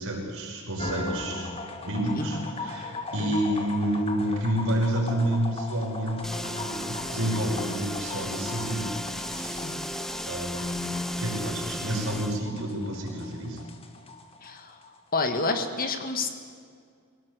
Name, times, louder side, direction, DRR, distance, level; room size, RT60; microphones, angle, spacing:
voice 1, 0.0-1.5 1.8-8.9 9.2-9.6 10.3-13.6, right 1 dB, 65° right, -1 dB, 5.7 m, -29 dB
sound 1, 0.8-14.9, left 3 dB, 25° left, 1.6 m, -39 dB
voice 2, 2.1-2.4 3.2-3.4 9.6-9.8 14.4-14.8 15.1-16.3, left 3 dB, 40° left, 7 dB, 1.7 m, -29 dB
sound 2, 6.2-12.4, equal, ahead, 0.8 m, -35 dB
22.0 x 18.0 x 8.2 m, 2.1 s
head